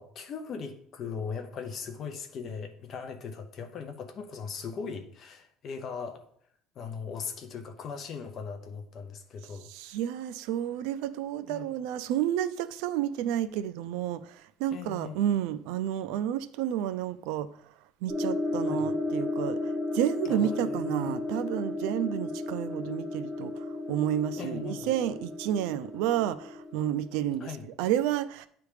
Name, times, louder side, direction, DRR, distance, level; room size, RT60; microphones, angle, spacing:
voice 1, 0.0-6.2 6.8-9.7 11.4-11.7 14.7-15.3 18.7-18.9 20.3-21.2 24.3-24.9 27.4-27.6, left 6 dB, 30° left, 0.7 m, -39 dB
voice 2, 9.7-17.5 18.0-28.5, right 11 dB, 70° right, 0.4 m, -31 dB
sound 1, 18.1-27.6, left 2 dB, ahead, 2.8 m, -34 dB
9.2 x 3.4 x 4.8 m
cardioid pair, 175°, 0 cm